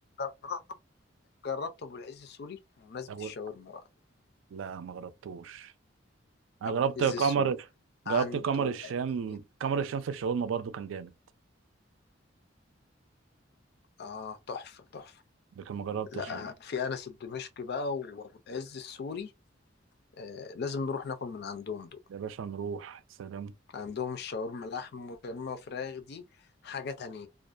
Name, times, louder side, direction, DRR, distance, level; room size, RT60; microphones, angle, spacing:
voice 1, 0.2-0.6 1.4-3.8 6.6-7.5 8.1-8.9 9.3-9.4 14.0-15.2 16.1-19.3 20.2-22.0 23.7-26.2 26.6-27.3, left 5 dB, 60° left, 0.5 m, -37 dB
voice 2, 4.5-5.7 6.6-7.6 8.1-11.1 15.6-16.4 22.1-23.5, right 6 dB, 85° right, 0.4 m, -32 dB
2.4 x 2.1 x 2.4 m
head